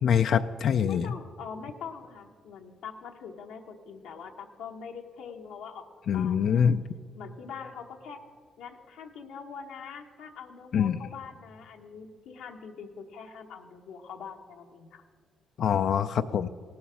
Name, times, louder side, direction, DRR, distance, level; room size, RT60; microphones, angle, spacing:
voice 1, 0.0-1.1 6.1-6.8 10.7-11.0 15.6-16.5, left 8 dB, 65° left, 8 dB, 0.4 m, -24 dB
voice 2, 0.8-5.9 6.1-6.7 7.1-8.2 8.6-15.0, left 6 dB, 85° left, 1 dB, 1.0 m, -43 dB
17.5 x 7.1 x 6.1 m, 2.1 s
cardioid pair, 90°, 0 cm